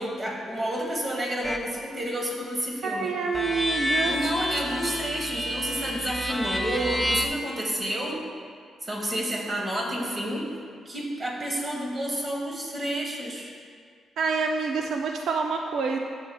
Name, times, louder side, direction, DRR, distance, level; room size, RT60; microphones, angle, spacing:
voice 1, 0.0-3.1 3.8-8.2 8.8-10.5 10.8-13.5, right 1 dB, 25° right, -1 dB, 1.3 m, -30 dB
sound 1, 1.4-1.7 3.3-7.3, left 1 dB, 5° right, 0.4 m, -29 dB
voice 2, 2.8-4.1 14.2-16.0, right 4 dB, 70° right, 2 dB, 0.5 m, -27 dB
11.0 x 8.1 x 2.3 m, 2.1 s
cardioid pair, 155°, 0 cm